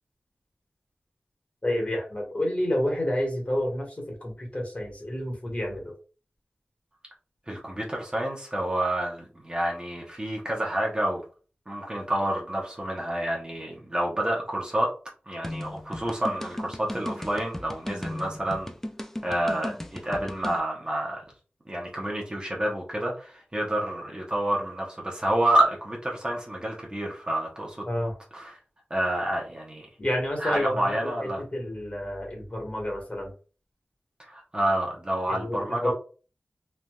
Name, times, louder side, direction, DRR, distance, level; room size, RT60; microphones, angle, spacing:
voice 1, 1.6-5.9 27.9-28.1 30.0-30.9 31.2-33.3 35.3-35.9, left 1 dB, 40° left, -1 dB, 1.4 m, -29 dB
voice 2, 7.5-11.2 11.7-14.9 15.3-18.7 19.2-21.2 21.7-27.9 28.3-28.5 28.9-29.9 30.4-31.4 34.2-35.9, right 1 dB, 25° right, -1 dB, 0.8 m, -28 dB
sound 1, 15.4-20.6, left 1 dB, 10° left, 0.3 m, -36 dB
3.2 x 2.6 x 2.3 m, 0.36 s
wide cardioid pair, 80°, 4 cm